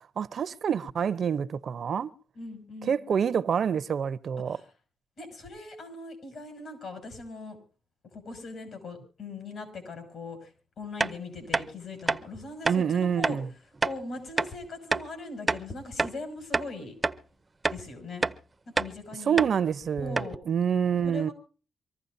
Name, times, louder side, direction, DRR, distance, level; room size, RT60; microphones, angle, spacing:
voice 1, 0.0-2.1 2.8-4.6 12.6-13.5 19.2-21.3, right 7 dB, 60° right, 0.7 m, -27 dB
voice 2, 2.4-3.0 4.5-4.7 5.2-7.6 8.1-10.5 10.8-13.4 13.8-16.9 17.7-18.2 18.7-19.5 20.0-20.4 21.0-21.3, left 3 dB, 65° left, 7.0 m, -40 dB
sound 1, 11.0-11.1 11.5-11.7 12.1-12.2 12.7-12.8 13.2-13.4 13.8-14.0 14.4-14.5 14.9-15.1 15.5-16.2 16.5-16.7 17.0-17.2 17.6-17.8 18.2-18.4 18.8-18.9 19.4-19.5 19.8-19.9 20.2-20.4, right 3 dB, 20° right, 0.6 m, -27 dB
25.0 x 15.0 x 2.6 m
cardioid pair, 125°, 0 cm